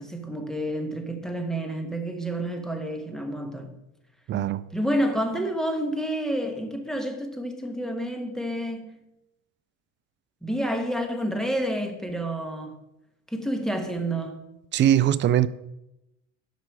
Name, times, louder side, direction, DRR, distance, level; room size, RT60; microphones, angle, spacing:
voice 1, 0.0-3.8 4.7-9.0 10.4-12.8 13.3-14.4, right 1 dB, ahead, 1.2 m, -29 dB
voice 2, 4.3-4.6 14.7-15.5, right 11 dB, 30° right, 0.4 m, -21 dB
11.5 x 5.8 x 4.7 m
supercardioid pair, 110°, 39 cm